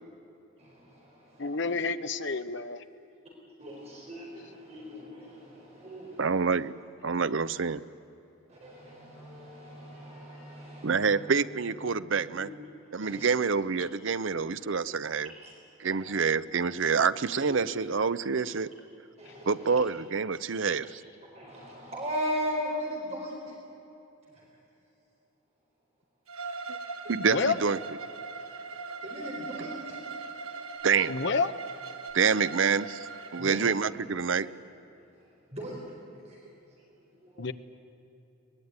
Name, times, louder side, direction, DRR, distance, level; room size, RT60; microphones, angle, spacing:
voice 1, 0.6-1.6 3.6-6.5 8.5-11.2 12.4-12.5 13.0-13.3 15.2-15.5 15.8-16.1 17.5-17.8 19.2-19.8 21.3-23.6 24.3-24.5 29.0-30.0 30.6-30.7 33.4-33.7 35.0-35.8 36.2-37.5, equal, 30° right, -2 dB, 4.4 m, -39 dB
voice 2, 1.4-2.8 27.3-27.5 31.1-31.5 37.4-37.5, left 4 dB, 55° left, 10 dB, 1.0 m, -29 dB
voice 3, 6.2-6.7 7.0-7.8 10.8-12.5 12.9-15.3 15.8-18.7 19.5-20.8 26.7-26.8 27.1-27.8 30.8-31.2 32.1-33.1 33.3-34.5, right 5 dB, 65° right, 14 dB, 0.6 m, -27 dB
Wind instrument woodwind instrument, 8.6-12.8, right 1 dB, 10° left, 5.4 m, -50 dB
Bowed string instrument, 26.3-33.5, right 4 dB, 90° right, 1.6 m, -40 dB
23.0 x 20.0 x 9.7 m, 3.0 s
head